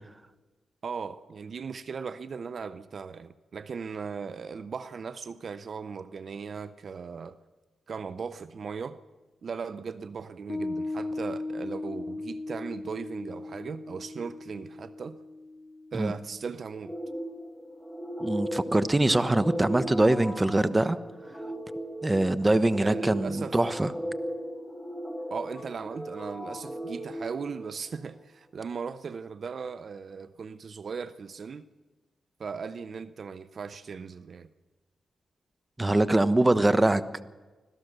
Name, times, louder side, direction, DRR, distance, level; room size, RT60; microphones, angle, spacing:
voice 1, 0.8-7.4 7.9-9.0 9.4-15.2 15.9-16.9 22.8-23.6 25.3-31.7 32.4-34.5, right 5 dB, 60° right, 0.7 m, -38 dB
Piano, 10.5-17.3, left 2 dB, 35° left, 0.8 m, -38 dB
sound 1, 16.8-28.1, equal, 5° left, 2.5 m, -37 dB
voice 2, 18.2-21.0 22.0-23.9 35.8-37.0, right 2 dB, 20° right, 1.0 m, -23 dB
25.5 x 17.0 x 6.7 m
cardioid pair, 65°, 0 cm